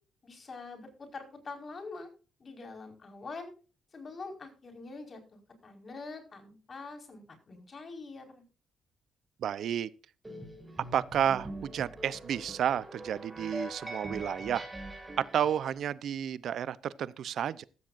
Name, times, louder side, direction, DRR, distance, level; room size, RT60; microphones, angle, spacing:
voice 1, 0.2-2.1 2.4-3.5 3.9-8.4, left 3 dB, 40° left, 4.9 m, -45 dB
voice 2, 9.4-9.9 10.9-14.6 15.2-17.6, right 9 dB, 65° right, 0.7 m, -31 dB
sound 1, 10.2-15.7, right 1 dB, 15° right, 6.2 m, -43 dB
15.0 x 15.0 x 2.6 m
cardioid pair, 90°, 0 cm